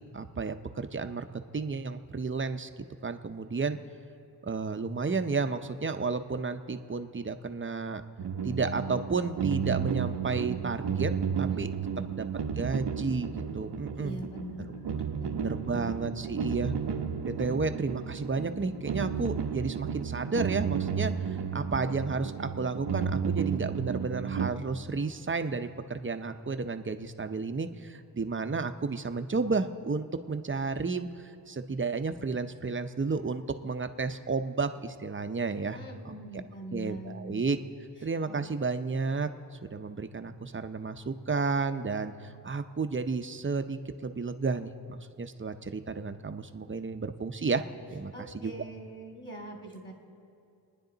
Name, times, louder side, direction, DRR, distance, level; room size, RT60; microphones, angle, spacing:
voice 1, 0.1-1.3 1.5-2.7 3.0-3.8 4.4-8.0 8.4-11.1 11.4-11.7 12.2-12.3 12.6-14.2 15.3-16.7 17.2-21.1 21.5-35.8 36.0-36.1 36.7-37.6 38.0-39.3 39.6-47.6 47.9-48.5, right 4 dB, 30° right, 8 dB, 0.6 m, -32 dB
sound 1, 8.2-24.5, right 7 dB, 80° right, 0.9 m, -33 dB
voice 2, 11.9-12.2 13.9-15.4 35.7-37.4 38.3-38.4 48.1-49.9, right 1 dB, 25° left, 1 dB, 2.6 m, -43 dB
27.0 x 10.0 x 4.0 m, 2.6 s
wide cardioid pair, 85°, 40 cm